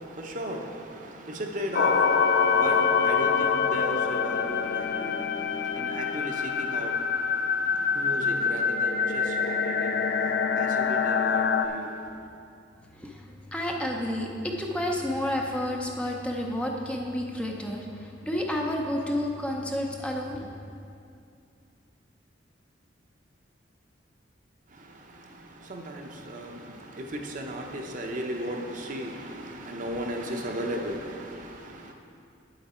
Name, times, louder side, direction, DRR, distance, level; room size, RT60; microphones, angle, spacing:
voice 1, 0.0-12.3 24.7-31.9, right 1 dB, 45° right, 0.8 m, -36 dB
sound 1, 1.7-11.7, left 5 dB, 60° left, 0.4 m, -25 dB
voice 2, 12.9-20.6, left 1 dB, 5° left, 0.6 m, -30 dB
9.1 x 8.0 x 4.3 m
head